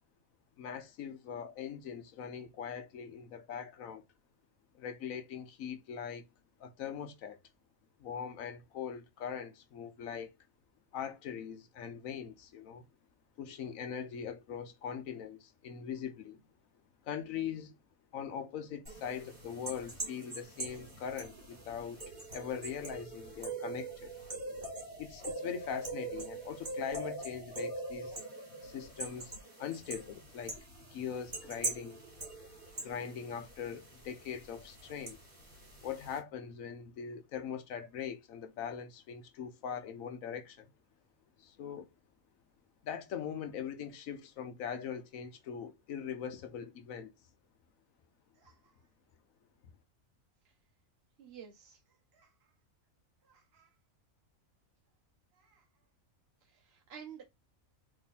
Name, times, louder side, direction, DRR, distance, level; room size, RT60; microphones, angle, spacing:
voice 1, 0.6-4.0 4.7-6.3 6.6-7.4 8.0-10.3 10.9-12.9 13.4-16.4 17.0-17.8 18.1-22.0 22.3-24.1 25.0-28.2 28.6-29.3 29.6-30.6 30.9-32.0 32.8-35.2 35.8-40.7 41.4-41.9 42.8-47.1, left 7 dB, 75° left, 1.1 m, -41 dB
sound 1, 18.9-36.2, right 2 dB, 40° right, 2.2 m, -43 dB
voice 2, 48.3-48.9 50.4-50.5 51.2-52.5 53.2-53.7 55.3-55.7 56.4-57.2, right 8 dB, 55° right, 0.9 m, -54 dB
3.6 x 3.3 x 4.1 m
omnidirectional pair, 1.4 m